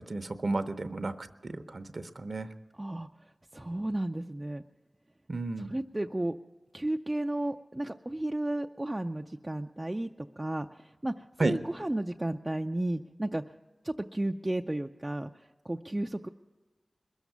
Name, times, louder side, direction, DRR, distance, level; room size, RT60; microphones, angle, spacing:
voice 1, 0.1-2.5 5.3-5.7 11.4-11.6, right 2 dB, 60° right, 9 dB, 0.7 m, -32 dB
voice 2, 3.5-4.6 5.7-6.3 6.7-13.4 13.8-15.3 15.7-16.3, right 1 dB, 25° right, 4 dB, 0.4 m, -33 dB
21.5 x 7.3 x 9.2 m, 1.2 s
wide cardioid pair, 65°, 0 cm